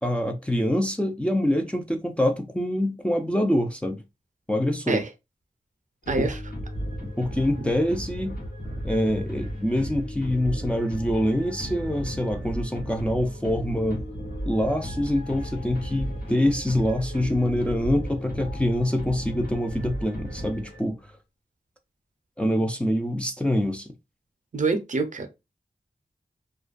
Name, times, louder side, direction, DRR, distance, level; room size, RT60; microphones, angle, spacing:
voice 1, 0.0-4.0 4.5-5.0 6.2-6.3 7.0-8.4 8.8-14.0 14.5-21.0 22.4-23.9, left 1 dB, 10° left, 0.4 m, -25 dB
sound 1, 6.0-21.1, equal, 80° left, 1.1 m, -35 dB
voice 2, 6.1-6.4 24.5-25.3, right 3 dB, 55° right, 0.5 m, -25 dB
2.3 x 2.3 x 2.3 m
wide cardioid pair, 95°, 15 cm